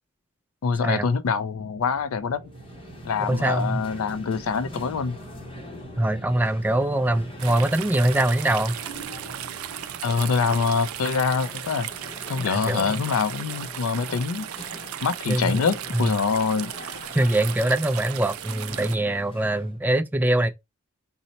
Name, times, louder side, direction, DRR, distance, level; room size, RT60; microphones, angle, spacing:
voice 1, 0.6-2.4 3.0-5.2 10.0-11.9 12.3-14.5 15.0-16.7, left 5 dB, 75° left, 0.4 m, -25 dB
sound 1, 1.5-13.8, right 1 dB, 45° right, 0.7 m, -46 dB
sound 2, 2.4-19.8, left 1 dB, 25° left, 0.7 m, -43 dB
voice 2, 3.3-3.8 6.0-8.8 12.5-13.0 15.3-15.6 15.9-16.1 17.1-20.5, right 1 dB, 10° right, 0.3 m, -23 dB
sound 3, 7.4-19.0, right 11 dB, 80° right, 0.4 m, -36 dB
4.0 x 2.0 x 4.1 m
head